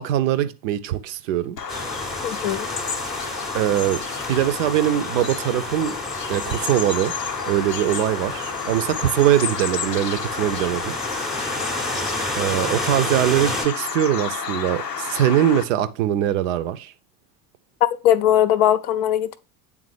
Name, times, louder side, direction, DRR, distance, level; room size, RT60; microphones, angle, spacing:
voice 1, 0.0-1.6 3.5-4.0 4.3-6.0 6.3-7.1 7.5-11.5 12.4-16.9, right 11 dB, 55° right, 0.6 m, -22 dB
Bird vocalization bird call bird song, 1.6-15.6, left 6 dB, 90° left, 0.6 m, -30 dB
Forest trees rustling in the wind, 1.7-13.7, equal, ahead, 0.7 m, -32 dB
voice 2, 2.2-2.7 18.0-19.4, left 11 dB, 45° left, 0.5 m, -19 dB
8.4 x 3.6 x 3.2 m
figure-of-eight pair, 70°, 48 cm